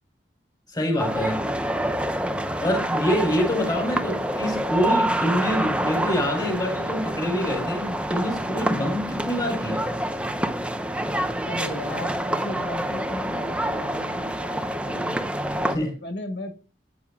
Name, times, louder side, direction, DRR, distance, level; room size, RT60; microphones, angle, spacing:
voice 1, 0.7-1.5 2.6-9.9 15.7-15.9, equal, 25° left, 3.9 m, -26 dB
sound 1, 1.0-15.8, right 1 dB, 5° right, 0.8 m, -27 dB
voice 2, 11.4-15.2 15.8-16.5, left 1 dB, 75° left, 1.4 m, -36 dB
14.0 x 8.9 x 2.4 m
head